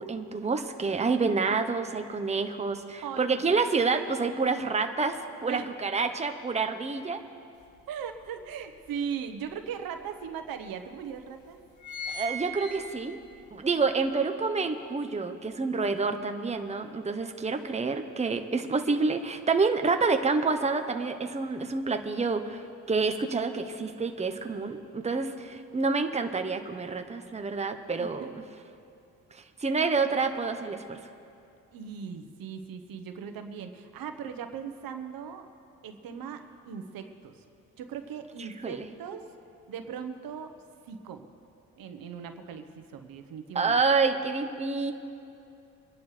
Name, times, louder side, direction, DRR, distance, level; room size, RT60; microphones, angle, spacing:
voice 1, 0.0-7.2 12.1-13.2 13.5-28.3 29.3-31.0 38.4-38.9 43.5-44.9, right 4 dB, 20° right, 6 dB, 0.9 m, -28 dB
voice 2, 3.0-3.4 5.4-5.7 7.9-11.6 13.6-13.8 27.9-28.3 31.7-35.5 35.8-37.3 37.8-39.3 39.7-40.5 40.9-41.3 41.8-43.8, right 7 dB, 75° right, 7 dB, 1.2 m, -39 dB
sound 1, 7.6-7.7 8.1-9.3 10.0-10.1 10.3-10.4 11.1-11.3 11.5-13.4 13.8-13.9, right 1 dB, 60° left, 2.2 m, -38 dB
25.0 x 11.0 x 3.3 m, 2.7 s
cardioid pair, 75°, 35 cm